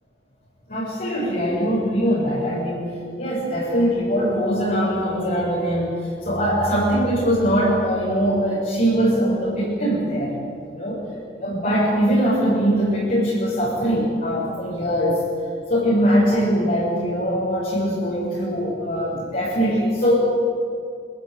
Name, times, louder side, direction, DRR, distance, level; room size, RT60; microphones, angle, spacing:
voice 1, 0.7-2.8 3.2-5.9 6.2-10.3 10.7-11.0 11.4-15.2 15.7-20.1, equal, 50° left, -8 dB, 6.8 m, -21 dB
27.0 x 16.0 x 9.4 m, 2.4 s
head